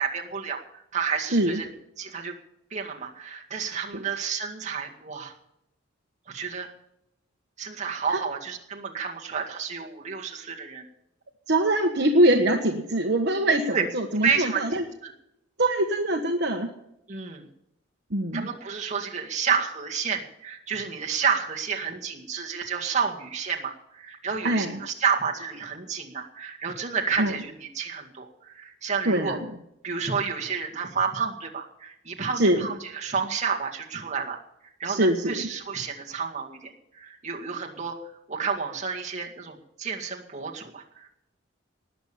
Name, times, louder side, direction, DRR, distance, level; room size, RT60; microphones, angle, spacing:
voice 1, 0.0-1.7 2.0-2.4 2.7-5.3 6.3-6.7 7.6-10.8 13.7-13.8 14.2-14.6 15.0-15.1 17.1-17.5 18.3-29.4 29.8-34.4 34.8-38.0 38.3-41.1, right 6 dB, 35° right, 0 dB, 2.1 m, -30 dB
voice 2, 11.5-14.8 15.6-16.7 18.1-18.5 24.4-24.8 27.2-27.3 29.0-29.4 32.4-32.7 34.8-35.5, right 1 dB, 55° right, 3 dB, 1.3 m, -23 dB
19.0 x 7.1 x 8.7 m, 0.81 s
head